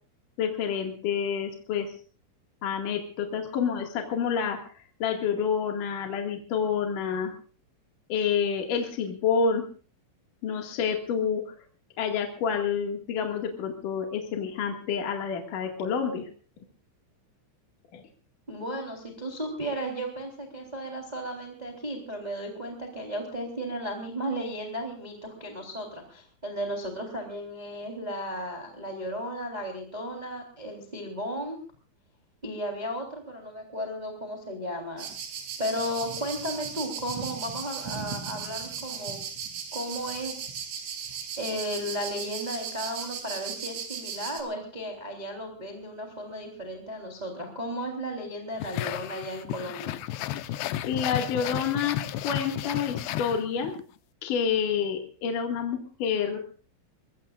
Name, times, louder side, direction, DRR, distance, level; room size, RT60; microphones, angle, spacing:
voice 1, 0.4-1.9 2.6-4.6 5.0-7.3 8.1-9.6 10.4-11.5 12.0-16.3 17.9-18.0 50.9-52.0 52.2-53.7 54.2-56.4, left 6 dB, 50° left, 3 dB, 3.0 m, -28 dB
voice 2, 18.5-31.6 32.4-35.1 35.6-39.2 39.7-40.3 41.4-50.0, equal, 10° right, 2 dB, 3.0 m, -34 dB
sound 1, 35.0-44.4, right 7 dB, 75° right, 5.5 m, -37 dB
sound 2, 48.6-53.8, left 13 dB, 75° left, 2.7 m, -33 dB
24.0 x 22.0 x 2.5 m, 0.40 s
omnidirectional pair, 5.5 m